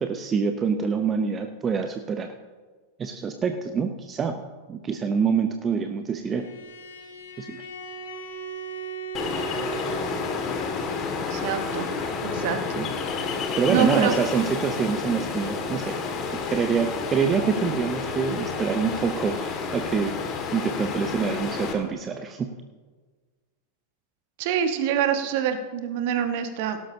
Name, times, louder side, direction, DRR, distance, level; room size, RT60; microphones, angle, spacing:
voice 1, 0.0-2.3 3.0-4.4 4.7-6.5 7.4-7.7 12.7-12.9 13.6-16.0 16.3-20.2 20.5-22.5, right 6 dB, 20° right, 6 dB, 0.7 m, -26 dB
Bowed string instrument, 6.2-11.0, right 4 dB, 65° left, 2.8 m, -37 dB
Ocean, 9.1-21.7, left 5 dB, 30° left, 2.0 m, -30 dB
voice 2, 11.3-11.9 12.2-12.8 13.7-14.1 24.4-26.8, right 8 dB, 50° right, 8 dB, 1.3 m, -25 dB
17.0 x 12.5 x 2.8 m, 1.4 s
figure-of-eight pair, 90°, 0 cm